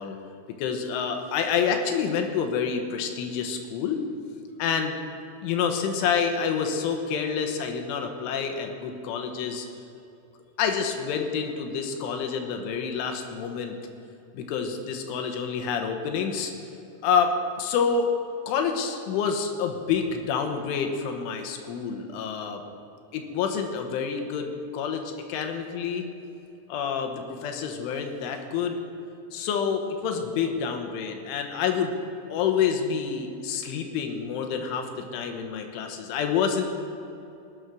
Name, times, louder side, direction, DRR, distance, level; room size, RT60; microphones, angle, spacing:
voice 1, 0.6-4.0 4.6-5.0 5.4-9.7 10.6-13.8 14.3-16.5 17.0-18.1 18.5-22.6 23.1-26.1 26.7-28.8 29.3-31.9 32.3-36.6, left 6 dB, 85° left, 5 dB, 3.6 m, -28 dB
19.5 x 8.1 x 6.2 m, 2.7 s
omnidirectional pair, 5.5 m